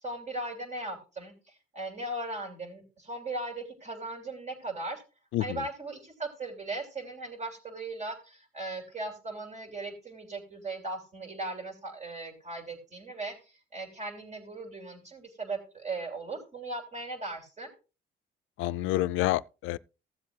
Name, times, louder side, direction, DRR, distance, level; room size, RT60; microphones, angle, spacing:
voice 1, 0.0-5.0 5.4-17.7, right 2 dB, 35° right, 2.9 m, -38 dB
voice 2, 18.6-19.8, left 16 dB, 90° left, 0.4 m, -28 dB
16.0 x 7.6 x 2.3 m
cardioid pair, 90°, 20 cm